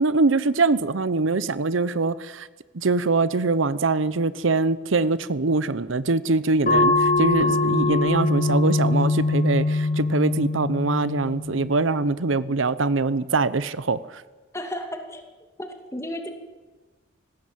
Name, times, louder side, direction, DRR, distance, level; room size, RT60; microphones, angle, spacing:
voice 1, 0.0-2.5 2.7-14.2, right 3 dB, 90° right, 16 dB, 0.8 m, -23 dB
sound 1, 6.7-11.8, left 2 dB, 45° left, 3.0 m, -22 dB
voice 2, 14.5-15.3 15.6-16.3, left 1 dB, 15° left, 5 dB, 2.4 m, -33 dB
18.5 x 16.0 x 9.0 m, 1.3 s
head